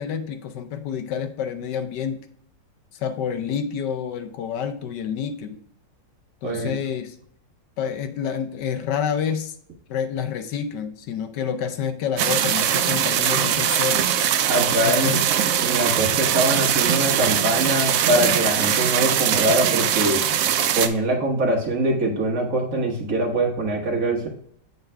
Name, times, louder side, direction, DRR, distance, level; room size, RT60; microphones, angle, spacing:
voice 1, 0.0-2.3 2.9-5.6 6.4-7.2 7.8-9.6 9.9-14.1 14.8-15.2, left 7 dB, 75° left, 8 dB, 1.2 m, -28 dB
voice 2, 6.4-6.8 14.5-15.2 15.6-20.2 20.7-24.3, right 1 dB, 50° right, -1 dB, 1.7 m, -23 dB
sound 1, 12.2-20.9, right 9 dB, 75° right, 0.8 m, -21 dB
8.1 x 4.0 x 3.3 m, 0.63 s
omnidirectional pair, 2.0 m